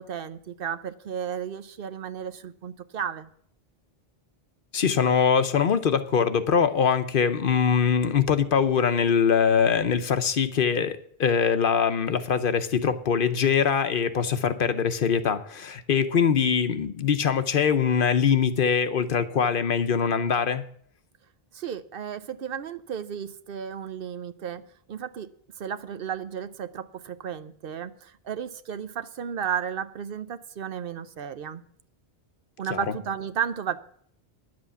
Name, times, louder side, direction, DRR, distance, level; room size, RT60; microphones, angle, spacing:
voice 1, 0.0-3.3 21.5-24.6 24.9-25.3 25.6-31.6 32.6-33.8, right 8 dB, 65° right, 11 dB, 0.8 m, -33 dB
voice 2, 4.7-20.6 32.7-32.8, left 7 dB, 60° left, 11 dB, 0.9 m, -23 dB
10.5 x 7.8 x 7.0 m, 0.62 s
omnidirectional pair, 1.0 m